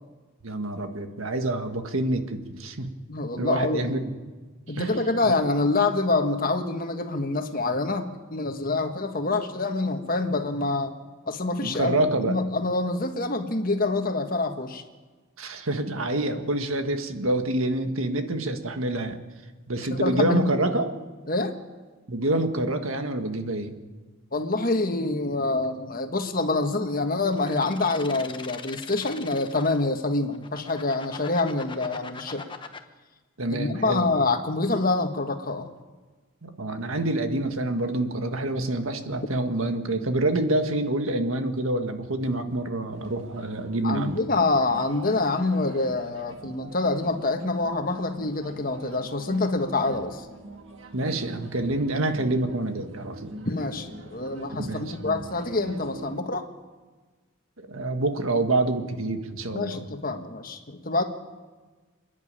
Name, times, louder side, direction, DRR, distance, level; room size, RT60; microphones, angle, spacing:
voice 1, 0.4-2.9 3.4-4.1 4.7-4.9 5.3-5.4 11.6-12.4 15.4-19.2 19.7-20.9 22.1-23.8 33.4-34.0 36.4-44.2 50.9-53.3 54.6-54.9 57.6-59.8, right 2 dB, 85° right, 6 dB, 1.7 m, -27 dB
voice 2, 3.1-3.8 4.7-10.9 11.3-14.8 19.9-20.4 21.3-21.5 24.3-32.4 33.5-35.7 43.8-50.3 53.4-56.5 59.5-61.0, left 3 dB, 45° left, 6 dB, 1.5 m, -26 dB
sound 1, 27.3-29.8 30.3-32.8, left 5 dB, 25° left, 1.0 m, -41 dB
sound 2, 42.9-56.2, right 1 dB, 65° right, 1.9 m, -45 dB
28.5 x 10.5 x 9.0 m, 1.3 s
head